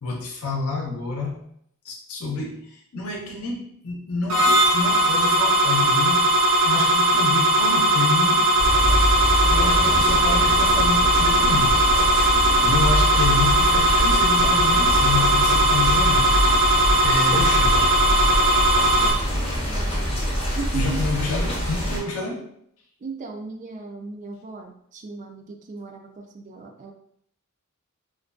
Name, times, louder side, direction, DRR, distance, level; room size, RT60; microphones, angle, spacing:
voice 1, 0.0-1.4 1.8-6.3 6.6-8.5 9.5-11.8 12.6-16.7 17.0-18.0 20.1-20.2 20.7-22.5, left 3 dB, 70° left, 0 dB, 0.6 m, -28 dB
sound 1, 4.3-19.1, right 1 dB, 75° right, 0.7 m, -19 dB
sound 2, 8.6-22.0, equal, 25° left, 0.7 m, -24 dB
voice 2, 12.3-12.7 18.9-20.1 20.4-21.3 23.0-26.9, right 4 dB, 35° right, 3 dB, 0.3 m, -37 dB
2.4 x 2.2 x 2.4 m, 0.68 s
head